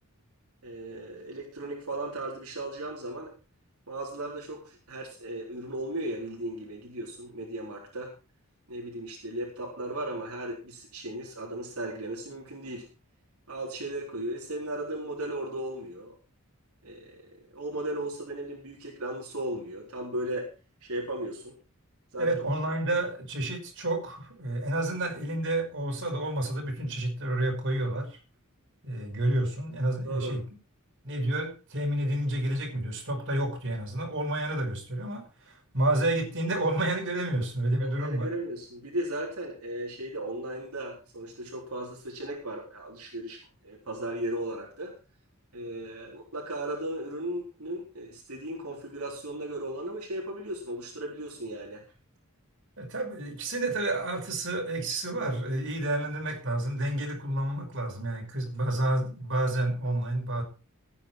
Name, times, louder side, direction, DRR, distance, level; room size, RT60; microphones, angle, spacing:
voice 1, 0.6-3.3 3.9-8.1 8.7-12.9 13.5-16.1 16.8-17.2 17.5-20.5 20.8-21.5 22.1-22.3 30.0-30.4 37.8-43.4 43.6-44.9 45.5-51.8, right 1 dB, 85° right, -2 dB, 3.9 m, -36 dB
voice 2, 22.2-28.1 28.8-30.4 31.0-38.3 52.8-60.4, right 1 dB, 60° right, 1 dB, 5.8 m, -30 dB
16.5 x 9.6 x 4.4 m, 0.34 s
head